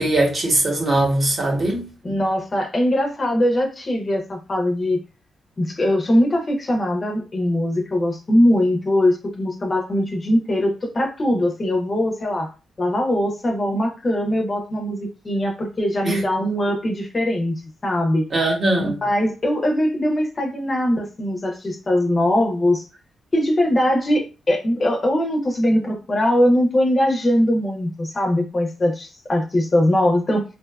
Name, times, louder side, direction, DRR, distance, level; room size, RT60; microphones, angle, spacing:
voice 1, 0.0-1.9 16.0-16.2 18.3-19.0, right 1 dB, 40° right, 0.9 m, -20 dB
voice 2, 2.0-5.0 5.6-12.5 12.8-17.6 17.8-18.3 19.0-22.8 23.3-30.4, left 1 dB, 30° left, 0.5 m, -21 dB
2.5 x 2.3 x 2.2 m
cardioid pair, 115°, 0 cm